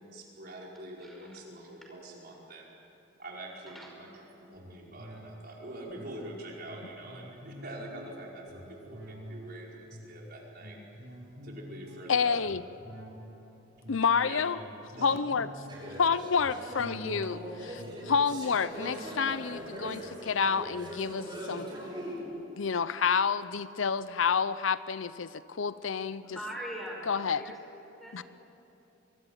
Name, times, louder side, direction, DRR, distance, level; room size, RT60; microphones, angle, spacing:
voice 1, 0.0-2.7 3.2-10.8 11.4-12.4 14.2-14.4 15.0-15.2 17.2-17.3, right 1 dB, 50° right, -2 dB, 5.0 m, -45 dB
voice 2, 1.0-1.4 3.7-3.9 26.2-27.1 27.3-27.6 28.0-28.2, equal, ahead, -1 dB, 5.6 m, -41 dB
sound 1, 4.5-20.3 20.7-20.8, equal, 70° right, 6.5 m, -48 dB
voice 3, 12.1-12.6 13.9-14.6 15.0-15.5 16.0-17.4 17.7-21.7 22.3-26.4 27.1-27.4 28.1-28.2, left 6 dB, 75° left, 15 dB, 0.6 m, -29 dB
sound 2, 15.7-22.2, equal, 25° right, 7.3 m, -41 dB
25.0 x 20.5 x 9.0 m, 3.0 s
head